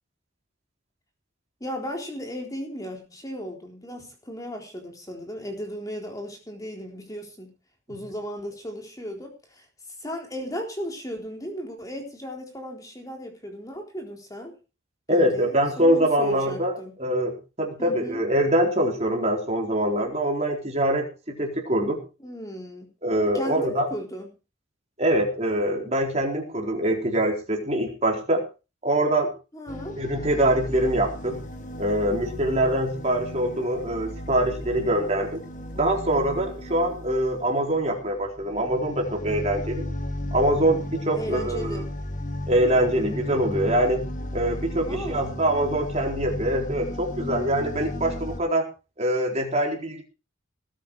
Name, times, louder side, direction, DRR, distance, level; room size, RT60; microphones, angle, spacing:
voice 1, 1.6-7.5 7.9-9.7 10.0-14.5 15.1-16.9 17.8-18.2 22.2-22.9 23.3-24.3 29.5-29.9 41.1-41.9 44.8-45.3, equal, 15° left, 2 dB, 3.9 m, -35 dB
voice 2, 15.1-22.0 23.0-23.9 25.0-28.4 28.8-29.3 30.0-31.4 31.8-35.4 35.7-39.8 40.3-41.8 42.5-44.0 44.3-48.6 49.0-50.0, right 1 dB, 35° right, 1 dB, 4.2 m, -24 dB
sound 1, 29.7-48.4, left 1 dB, 40° left, 1.6 m, -35 dB
19.5 x 9.3 x 4.8 m, 0.33 s
head